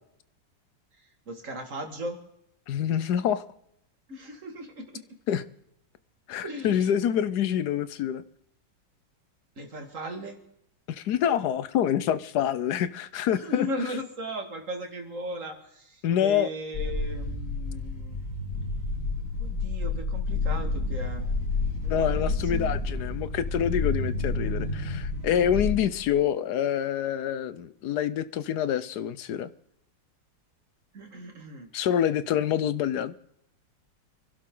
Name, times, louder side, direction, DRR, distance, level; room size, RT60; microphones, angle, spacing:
voice 1, 1.3-2.2 4.1-5.1 6.4-6.9 9.6-10.4 13.3-18.2 19.4-21.2 21.8-22.8 30.9-31.7, equal, 45° right, 4 dB, 2.5 m, -37 dB
voice 2, 2.7-3.4 5.3-5.4 6.3-8.2 10.9-13.7 16.0-16.5 21.9-29.5 31.7-33.1, left 9 dB, 70° left, 14 dB, 1.3 m, -26 dB
sound 1, 16.7-26.1, left 3 dB, 50° left, 8.8 m, -30 dB
26.5 x 12.0 x 3.9 m, 0.76 s
omnidirectional pair, 1.9 m